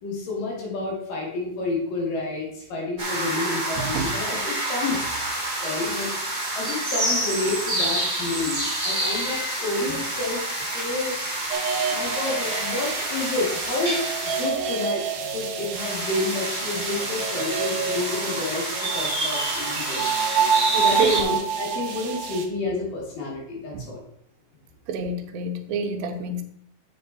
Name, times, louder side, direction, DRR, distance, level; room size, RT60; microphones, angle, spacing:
voice 1, 0.0-5.0 5.5-11.2 11.9-14.0 14.4-20.1 20.7-24.0, left 2 dB, 70° left, -2 dB, 3.9 m, -30 dB
sound 1, 3.0-21.2, right 1 dB, 30° right, 0.8 m, -28 dB
sound 2, 8.9-15.9, left 2 dB, 35° left, 2.7 m, -48 dB
sound 3, 11.5-22.5, right 6 dB, 70° right, 1.9 m, -28 dB
voice 2, 24.9-26.4, right 3 dB, 85° right, 5 dB, 2.7 m, -27 dB
7.4 x 7.3 x 4.0 m, 0.74 s
omnidirectional pair, 4.0 m